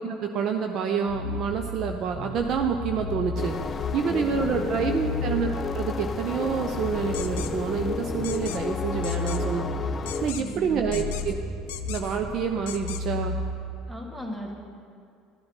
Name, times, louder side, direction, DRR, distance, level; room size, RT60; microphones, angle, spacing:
voice 1, 0.0-9.7 10.2-11.4 11.8-13.4, right 6 dB, 45° right, 5 dB, 0.7 m, -28 dB
sound 1, 1.1-13.6, left 2 dB, 30° right, 2.3 m, -34 dB
sound 2, 3.4-10.3, left 6 dB, 35° left, 0.4 m, -32 dB
voice 2, 4.0-4.7 10.4-10.9 13.9-14.5, right 1 dB, 10° right, 2 dB, 2.0 m, -37 dB
sound 3, 7.1-7.5 8.2-8.6 9.0-9.4 10.1-10.6 10.9-11.3 11.7-12.2 12.7-13.0, left 11 dB, 65° left, 0.7 m, -38 dB
13.5 x 11.5 x 5.9 m, 2.4 s
figure-of-eight pair, 60°, 0 cm